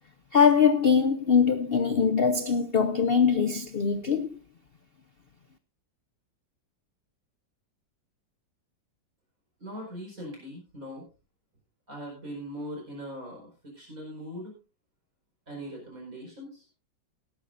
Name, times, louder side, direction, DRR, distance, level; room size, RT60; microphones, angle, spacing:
voice 1, 0.3-4.4, left 6 dB, 80° left, 0.5 m, -22 dB
voice 2, 9.6-11.1 11.9-14.5 15.5-16.7, equal, 45° right, 5.4 m, -40 dB
18.0 x 11.0 x 2.6 m
omnidirectional pair, 2.0 m